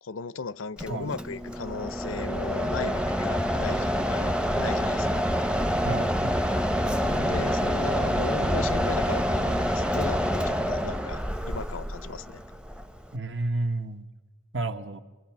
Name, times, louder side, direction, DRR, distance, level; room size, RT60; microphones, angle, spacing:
voice 1, 0.0-5.3 6.8-11.2 11.5-12.4, left 4 dB, 90° left, 18 dB, 0.7 m, -36 dB
Mechanisms, 0.8-13.2, equal, 5° right, 0.7 m, -27 dB
voice 2, 5.8-6.3 13.1-14.1 14.5-15.0, right 2 dB, 65° right, 8 dB, 1.3 m, -31 dB
27.5 x 24.5 x 6.0 m, 1.3 s
head